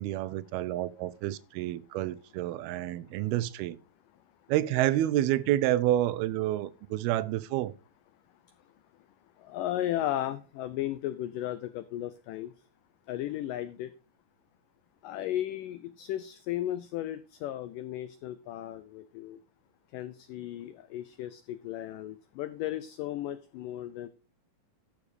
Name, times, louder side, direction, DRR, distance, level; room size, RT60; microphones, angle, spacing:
voice 1, 0.0-3.8 4.5-7.7, right 13 dB, 80° right, 2.4 m, -29 dB
voice 2, 9.4-12.5 13.1-13.9 15.0-19.4 19.9-24.1, left 13 dB, 90° left, 1.9 m, -35 dB
12.0 x 6.6 x 4.9 m
omnidirectional pair, 4.6 m